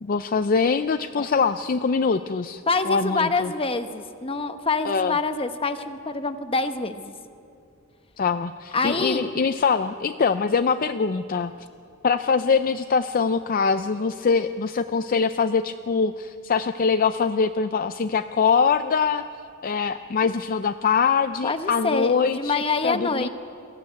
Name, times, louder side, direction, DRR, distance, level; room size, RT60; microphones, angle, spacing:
voice 1, 0.0-3.5 4.8-5.2 8.2-11.5 12.0-19.3 19.6-22.5 22.8-23.3, left 5 dB, 40° left, 9 dB, 0.5 m, -23 dB
voice 2, 2.7-7.1 8.7-9.3 21.4-23.3, left 3 dB, 25° left, 9 dB, 1.0 m, -26 dB
22.5 x 14.5 x 9.3 m, 2.5 s
head